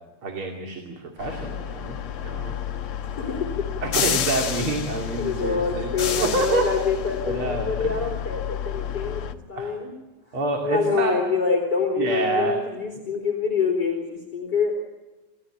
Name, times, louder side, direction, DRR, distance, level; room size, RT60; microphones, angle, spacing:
voice 1, 0.2-2.6 3.8-6.6 7.2-8.0 9.6-9.7 10.3-11.2 12.0-12.6, right 3 dB, 45° right, 2 dB, 3.3 m, -27 dB
sound 1, 1.2-9.3, left 9 dB, 55° left, 1.9 m, -30 dB
voice 2, 3.1-3.7 5.2-9.9 10.6-14.7, left 5 dB, 35° left, 1 dB, 4.0 m, -26 dB
29.0 x 14.5 x 8.8 m, 1.1 s
omnidirectional pair, 3.3 m